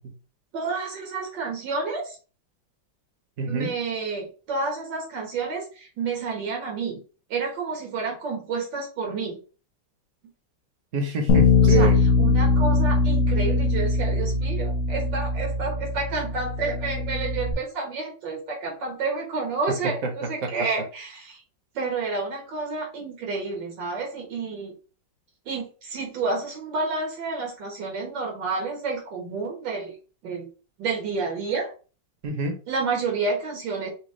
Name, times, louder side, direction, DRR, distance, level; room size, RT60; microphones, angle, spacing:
voice 1, 0.5-2.2 3.5-7.0 7.3-9.4 11.6-11.9 12.2-21.4 21.8-24.7 25.5-29.9 30.2-30.5 30.8-31.7 32.7-33.9, right 4 dB, 80° right, 0 dB, 2.1 m, -30 dB
voice 2, 3.4-3.7 10.9-12.0 20.0-20.5 32.2-32.6, right 4 dB, 50° right, 4 dB, 1.2 m, -26 dB
Bass guitar, 11.3-17.5, left 3 dB, 55° left, 1.1 m, -21 dB
6.1 x 2.3 x 3.2 m, 0.35 s
omnidirectional pair, 2.0 m